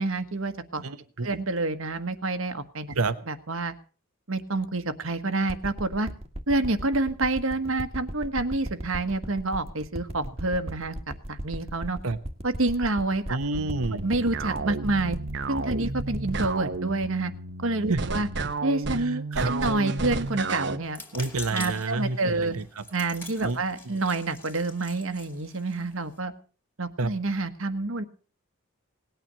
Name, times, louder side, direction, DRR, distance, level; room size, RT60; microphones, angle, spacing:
voice 1, 0.0-0.8 1.2-2.9 3.3-3.7 4.3-6.1 6.5-10.9 11.3-12.0 12.4-13.4 14.0-15.2 15.5-17.3 17.6-18.3 18.6-21.0 21.5-22.6 22.9-26.3 26.8-28.0, right 2 dB, 70° right, 9 dB, 1.4 m, -28 dB
voice 2, 0.8-1.3 3.0-3.2 12.0-12.2 13.3-14.0 17.9-18.0 19.0-19.5 21.1-22.8 23.4-23.6 27.0-27.1, right 3 dB, 90° right, 11 dB, 1.1 m, -29 dB
sound 1, 5.5-18.2 18.8-18.9, equal, 30° right, 1.4 m, -37 dB
sound 2, 13.6-20.8, right 3 dB, 55° right, 0.9 m, -32 dB
sound 3, 20.8-26.2, left 2 dB, 10° left, 2.5 m, -44 dB
19.0 x 9.2 x 6.9 m, 0.40 s
head